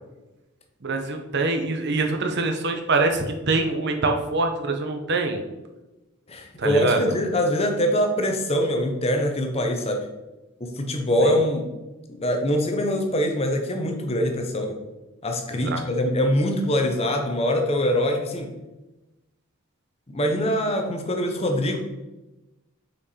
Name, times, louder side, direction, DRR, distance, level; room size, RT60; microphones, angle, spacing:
voice 1, 0.8-5.4 6.6-7.0 15.5-15.8, right 3 dB, 55° right, 4 dB, 0.7 m, -24 dB
voice 2, 6.3-10.1 10.6-11.7 12.1-14.8 15.2-18.5 20.1-21.8, equal, 30° left, 4 dB, 0.7 m, -23 dB
5.8 x 4.5 x 4.2 m, 1.0 s
head